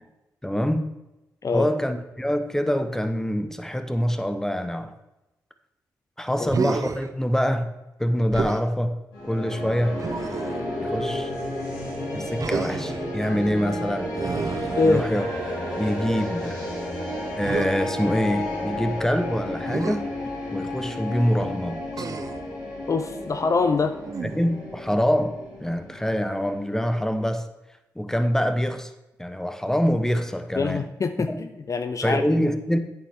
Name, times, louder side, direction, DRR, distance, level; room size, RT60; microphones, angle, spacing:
voice 1, 0.4-0.9 1.5-4.9 6.2-7.7 8.0-9.0 9.3-10.0 10.8-11.3 12.1-14.1 14.8-15.2 15.8-16.6 17.4-20.1 20.5-22.1 24.3-27.5 28.0-28.9 29.2-30.8 31.2-31.4 32.0-32.8, equal, 5° left, 8 dB, 1.0 m, -25 dB
voice 2, 6.4-6.8 14.8-15.0 22.9-24.0 30.6-32.4, left 4 dB, 45° left, 8 dB, 0.6 m, -24 dB
Human voice, 6.5-7.1 8.3-8.7 10.0-10.7 12.4-13.0 14.1-15.4 17.4-17.7 19.7-20.0 21.9-22.5 24.0-24.6, right 5 dB, 50° right, 0.7 m, -30 dB
sound 1, 9.1-27.3, left 1 dB, 90° left, 2.9 m, -32 dB
8.8 x 7.2 x 3.6 m, 0.96 s
supercardioid pair, 40°, 7 cm